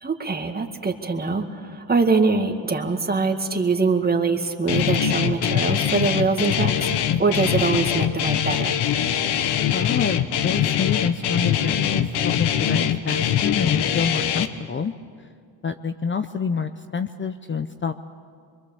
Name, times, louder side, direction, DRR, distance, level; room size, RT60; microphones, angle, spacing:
voice 1, 0.0-6.9 7.2-8.8, right 4 dB, 25° right, 4 dB, 2.1 m, -23 dB
Guitar, 4.7-14.5, left 9 dB, 80° left, 1.2 m, -23 dB
voice 2, 9.7-14.9 15.6-17.9, left 6 dB, 30° left, 10 dB, 0.7 m, -27 dB
25.0 x 23.5 x 7.2 m, 2.1 s
cardioid pair, 100°, 41 cm